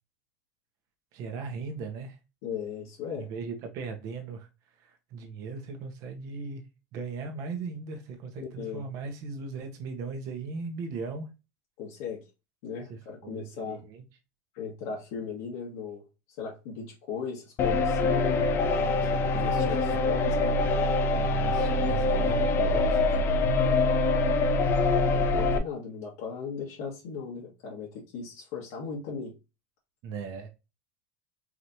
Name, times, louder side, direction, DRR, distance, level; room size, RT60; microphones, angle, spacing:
voice 1, 1.1-2.2 3.2-4.5 4.8-6.6 6.9-11.3 12.9-14.0 18.3-20.0 21.1-23.8 30.0-30.5, right 4 dB, 45° right, 1.3 m, -38 dB
voice 2, 2.4-3.3 8.4-8.9 11.8-12.2 12.6-13.8 14.5-16.0 16.3-18.5 19.3-20.6 24.9-29.3, left 6 dB, 70° left, 1.9 m, -37 dB
sound 1, 17.6-25.6, left 3 dB, 30° left, 0.5 m, -24 dB
4.8 x 3.3 x 2.8 m
supercardioid pair, 155°, 8 cm